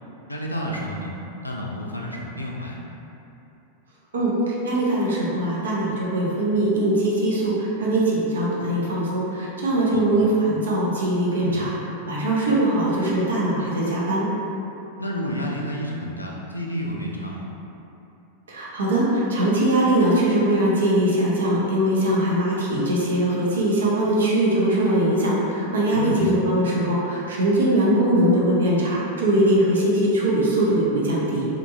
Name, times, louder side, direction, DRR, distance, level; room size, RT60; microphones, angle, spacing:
voice 1, 0.3-1.1 1.4-2.8 9.9-10.0 11.4-11.6 15.0-17.5 25.9-26.3, equal, 85° left, -2 dB, 0.3 m, -30 dB
voice 2, 4.1-11.7 12.0-14.3 18.5-31.5, right 1 dB, 65° right, -5 dB, 0.6 m, -21 dB
2.9 x 2.6 x 2.4 m, 2.9 s
figure-of-eight pair, 90°, 0 cm